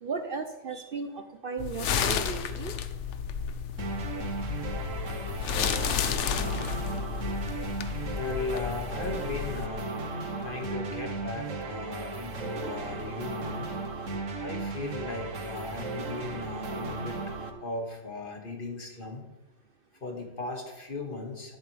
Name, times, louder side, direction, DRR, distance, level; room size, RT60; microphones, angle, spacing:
voice 1, 0.0-2.8, right 4 dB, 50° right, 7 dB, 0.8 m, -35 dB
sound 1, 1.6-9.7, left 7 dB, 70° left, 1.0 m, -32 dB
sound 2, 3.8-17.5, right 3 dB, 80° right, 1.6 m, -36 dB
voice 2, 8.1-10.0 10.4-13.7 14.4-17.2 17.6-19.3 20.0-21.6, left 3 dB, 45° left, 1 dB, 2.0 m, -37 dB
13.0 x 11.0 x 3.4 m, 1.0 s
omnidirectional pair, 1.3 m